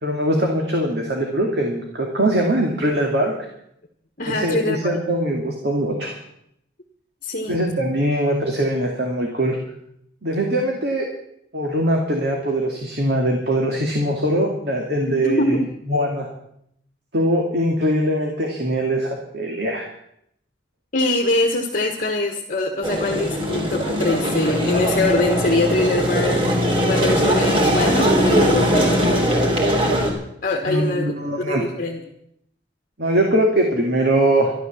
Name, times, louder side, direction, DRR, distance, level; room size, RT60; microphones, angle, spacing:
voice 1, 0.0-3.3 4.3-6.1 7.5-9.6 10.2-11.1 11.5-15.6 15.9-16.3 17.1-19.9 30.6-31.6 33.0-34.5, right 1 dB, 60° right, 1 dB, 2.3 m, -21 dB
voice 2, 4.2-4.9 7.2-7.5 15.1-15.6 20.9-26.4 26.9-28.8 30.4-32.0, left 2 dB, 45° left, 1 dB, 1.5 m, -23 dB
sound 1, 22.8-30.1, equal, 30° right, 3.5 m, -20 dB
12.5 x 12.5 x 7.2 m, 0.74 s
head